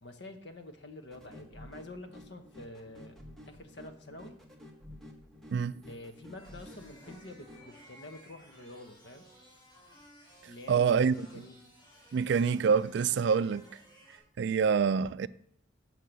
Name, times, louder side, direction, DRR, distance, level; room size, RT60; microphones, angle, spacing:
voice 1, 0.0-3.2 3.5-4.4 5.9-9.2 10.5-11.6, left 2 dB, 65° left, 1.0 m, -48 dB
sound 1, 1.1-7.7, left 1 dB, ahead, 1.0 m, -51 dB
sound 2, 6.3-14.2, equal, 20° left, 3.1 m, -57 dB
voice 2, 10.7-11.3 12.1-13.7 14.4-15.3, right 6 dB, 65° right, 0.3 m, -26 dB
7.6 x 4.6 x 6.8 m
head